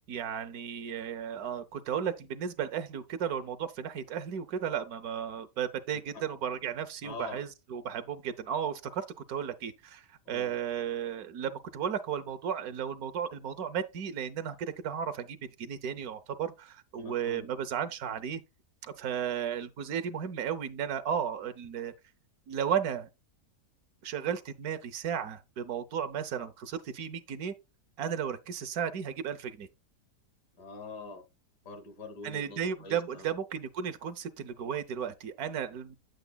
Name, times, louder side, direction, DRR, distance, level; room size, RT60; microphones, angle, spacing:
voice 1, 0.0-18.4 18.8-21.9 22.5-23.1 24.0-27.5 28.0-29.7 32.2-36.0, right 8 dB, 70° right, 1.2 m, -34 dB
voice 2, 5.9-6.2 7.0-7.4 10.3-10.6 17.0-17.5 30.6-31.3 31.6-33.3, left 3 dB, 85° left, 2.5 m, -44 dB
8.9 x 7.9 x 2.3 m
omnidirectional pair, 1.7 m